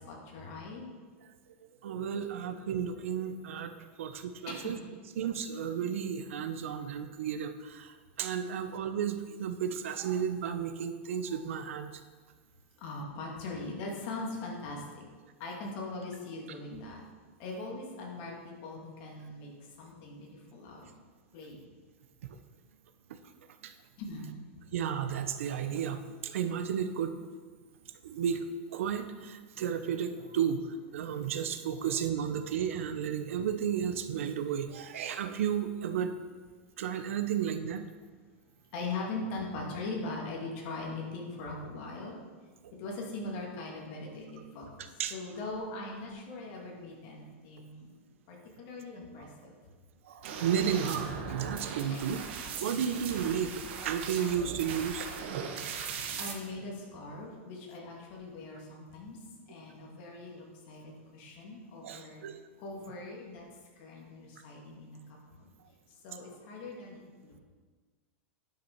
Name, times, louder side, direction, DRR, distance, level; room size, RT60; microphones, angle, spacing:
voice 1, 0.1-0.9 4.5-4.8 12.8-15.1 15.4-17.0 17.4-19.5 19.8-20.8 21.3-21.6 24.0-24.3 38.7-42.2 42.8-44.7 45.1-47.9 48.3-49.5 51.9-52.2 52.7-52.9 56.2-59.2 59.5-62.2 62.6-63.4 63.8-65.0 65.4-65.5 66.0-67.3, left 3 dB, 45° left, -1 dB, 2.2 m, -41 dB
voice 2, 1.8-3.7 4.0-4.8 5.2-11.9 23.6-23.7 24.7-27.2 28.0-28.4 28.7-36.1 36.8-37.8 45.0-45.1 49.2-49.3 50.1-52.2 52.6-53.5 53.8-55.1 55.7-55.8 61.8-62.3, right 8 dB, 80° right, 8 dB, 0.8 m, -33 dB
sound 1, 50.2-56.3, right 6 dB, 60° right, 1.2 m, -39 dB
9.9 x 6.0 x 4.6 m, 1.5 s
supercardioid pair, 160°, 7 cm